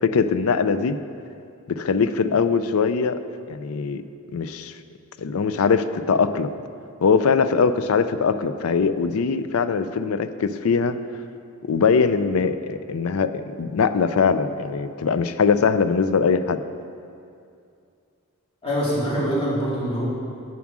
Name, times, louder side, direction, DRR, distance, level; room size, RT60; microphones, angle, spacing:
voice 1, 0.0-1.0 1.7-3.2 3.5-4.0 4.3-4.7 5.2-6.5 7.0-11.0 11.6-16.6, left 5 dB, 80° left, 12 dB, 0.4 m, -21 dB
voice 2, 18.6-20.1, equal, 25° left, -8 dB, 2.7 m, -24 dB
8.6 x 7.2 x 6.1 m, 2.5 s
head